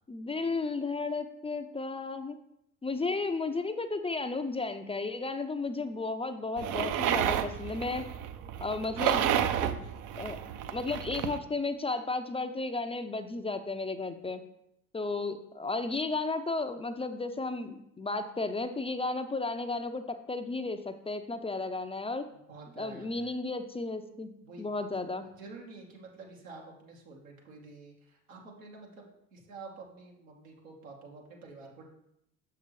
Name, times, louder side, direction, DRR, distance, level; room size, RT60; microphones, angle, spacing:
voice 1, 0.1-2.4 2.8-8.1 8.6-9.3 9.6-9.8 10.1-10.4 10.7-14.4 14.9-22.2 22.8-24.3 24.6-25.2, left 3 dB, 15° left, 8 dB, 0.5 m, -33 dB
sound 1, 6.6-11.4, right 9 dB, 55° right, 0.6 m, -31 dB
voice 2, 22.5-23.3 24.4-24.9 25.2-31.9, right 3 dB, 85° right, -1 dB, 1.4 m, -49 dB
6.5 x 5.8 x 3.1 m, 0.80 s
hypercardioid pair, 60°, 40 cm